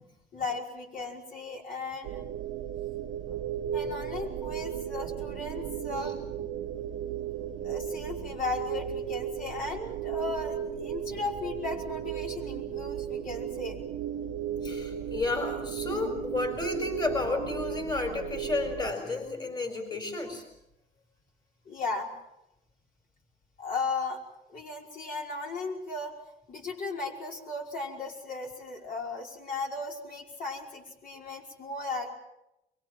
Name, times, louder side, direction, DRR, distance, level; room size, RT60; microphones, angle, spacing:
voice 1, 0.3-2.2 3.7-6.2 7.6-13.8 21.7-22.1 23.6-24.2 24.5-26.1 26.5-32.1, left 3 dB, 55° left, 0 dB, 5.4 m, -36 dB
sound 1, 2.0-18.9, right 9 dB, 85° right, 1.4 m, -35 dB
voice 2, 14.6-20.4, left 3 dB, 25° left, 6 dB, 4.4 m, -32 dB
24.0 x 23.5 x 7.7 m, 0.88 s
cardioid pair, 110°, 17 cm